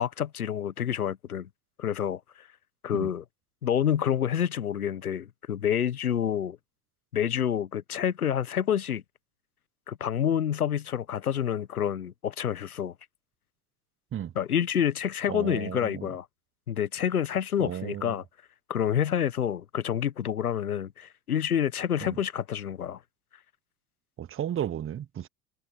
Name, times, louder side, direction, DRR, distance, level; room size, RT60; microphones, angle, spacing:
voice 1, 0.0-1.5 1.8-2.5 2.8-3.2 3.6-6.6 7.1-9.0 9.9-12.9 14.3-16.3 16.7-18.2 18.7-23.0, left 9 dB, 85° left, 1.6 m, -28 dB
voice 2, 15.3-16.1 17.6-18.1 22.0-22.1 24.2-25.3, right 10 dB, 30° right, 1.1 m, -34 dB
figure-of-eight pair, 70°, 43 cm